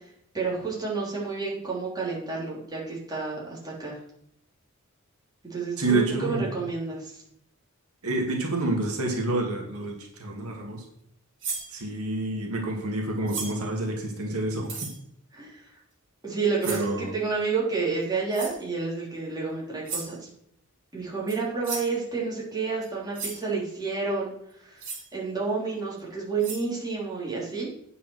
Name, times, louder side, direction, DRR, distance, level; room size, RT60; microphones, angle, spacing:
voice 1, 0.3-4.0 5.4-7.2 15.3-15.7 16.2-20.3 20.9-24.3 24.6-24.8 25.1-27.7, right 4 dB, 20° right, -5 dB, 3.3 m, -30 dB
voice 2, 5.8-6.5 8.0-10.8 11.7-14.9 16.7-17.1, right 2 dB, 90° right, 1 dB, 2.2 m, -28 dB
sound 1, 11.4-11.7 13.3-13.7 14.6-15.0 16.6-16.9 18.3-18.6 19.9-20.2 21.3-21.4 21.6-22.0 22.8-22.9 23.1-23.4 24.8-25.1 26.0-26.1 26.4-26.7, right 5 dB, 60° right, 3.4 m, -35 dB
9.1 x 5.5 x 6.3 m, 0.73 s
head